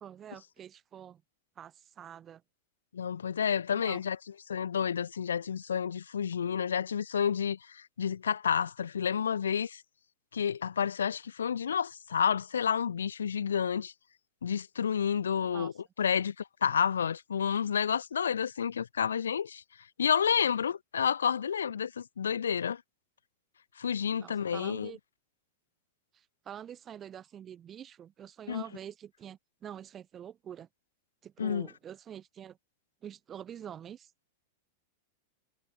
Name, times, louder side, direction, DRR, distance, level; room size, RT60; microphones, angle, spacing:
voice 1, 0.0-1.2 1.6-2.4 3.7-4.0 15.4-15.7 24.2-25.0 26.1-30.7 31.2-32.6 33.0-34.1, right 9 dB, 25° right, 0.8 m, -46 dB
voice 2, 2.9-4.2 4.5-9.8 10.3-13.9 14.4-15.7 16.0-19.6 20.0-22.8 23.8-24.9 28.5-28.6 31.4-31.7, left 7 dB, 70° left, 0.4 m, -30 dB
figure-of-eight pair, 95°, 0 cm